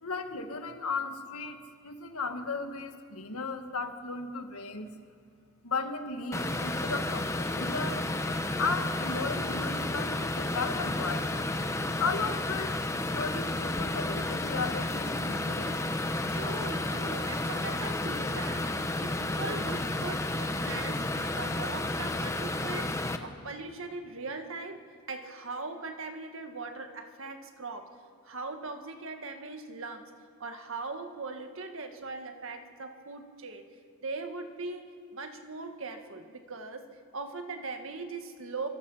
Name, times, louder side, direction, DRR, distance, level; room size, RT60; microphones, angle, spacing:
voice 1, 0.0-4.9 5.6-8.1 8.6-11.5 12.0-15.8, left 4 dB, 75° left, 6 dB, 1.9 m, -35 dB
sound 1, 6.3-23.2, left 2 dB, 15° left, 0.9 m, -32 dB
voice 2, 16.3-28.0 28.2-30.1 30.4-38.7, right 3 dB, 60° right, 6 dB, 1.9 m, -40 dB
25.5 x 25.0 x 5.7 m, 2.2 s
head